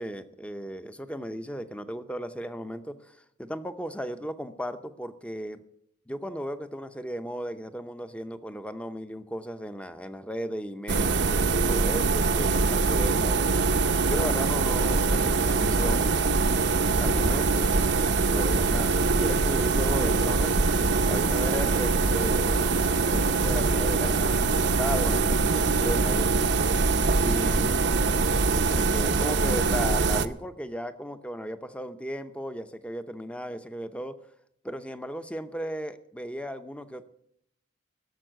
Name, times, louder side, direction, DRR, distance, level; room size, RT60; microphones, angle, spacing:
voice 1, 0.0-5.6 6.1-13.5 14.1-16.1 16.9-17.7 18.3-20.6 21.1-26.5 27.1-27.9 28.7-34.2 34.6-37.0, equal, 5° left, 10 dB, 0.7 m, -36 dB
sound 1, 10.9-30.3, right 3 dB, 60° right, 0.7 m, -23 dB
17.0 x 7.1 x 9.0 m, 0.75 s
head